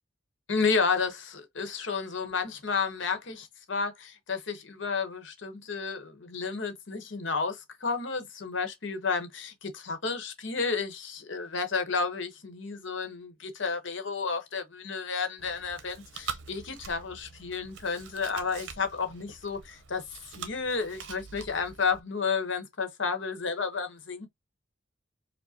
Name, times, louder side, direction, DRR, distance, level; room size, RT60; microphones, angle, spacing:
voice 1, 0.5-20.0 20.4-24.3, left 5 dB, 65° left, 0.9 m, -31 dB
Chewing mastication, 15.4-22.0, right 6 dB, 65° right, 0.7 m, -44 dB
4.8 x 2.1 x 2.7 m
head